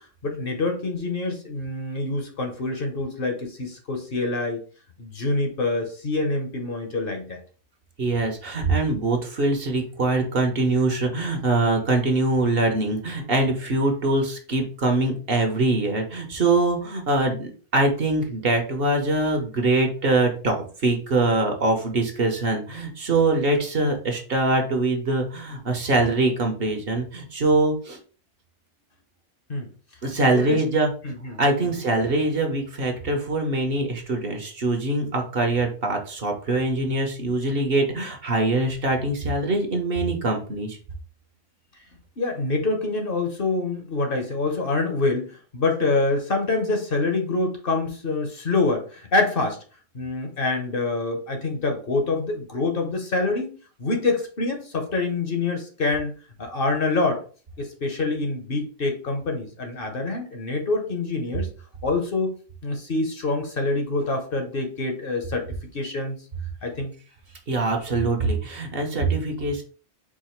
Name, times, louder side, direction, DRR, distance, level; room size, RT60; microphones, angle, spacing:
voice 1, 0.0-4.6 5.0-7.4 29.5-29.7 30.3-30.6 31.0-31.7 42.2-49.6 49.9-53.5 53.8-56.1 56.4-57.2 57.6-61.5 61.8-62.3 62.6-66.2 66.6-66.9, left 3 dB, 50° left, 4 dB, 1.0 m, -26 dB
voice 2, 8.0-28.0 30.0-30.9 31.4-40.8 67.5-69.6, right 2 dB, 55° right, 3 dB, 1.0 m, -23 dB
4.8 x 2.4 x 4.3 m, 0.39 s
omnidirectional pair, 1.3 m